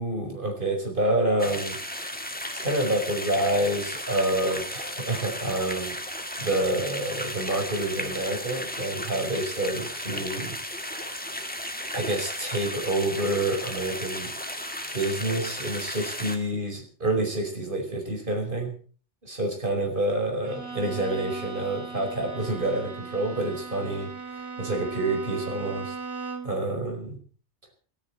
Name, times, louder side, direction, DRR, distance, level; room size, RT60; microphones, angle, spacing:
voice 1, 0.0-1.8 2.1-6.0 6.4-10.6 11.9-14.3 14.9-18.7 19.2-26.0 26.4-27.2, right 1 dB, 50° right, 2 dB, 5.1 m, -28 dB
sound 1, 1.4-16.4, left 1 dB, 10° left, 1.8 m, -35 dB
Bowed string instrument, 20.4-26.6, right 4 dB, 80° right, 2.5 m, -38 dB
28.0 x 10.0 x 4.5 m, 0.41 s
omnidirectional pair, 1.2 m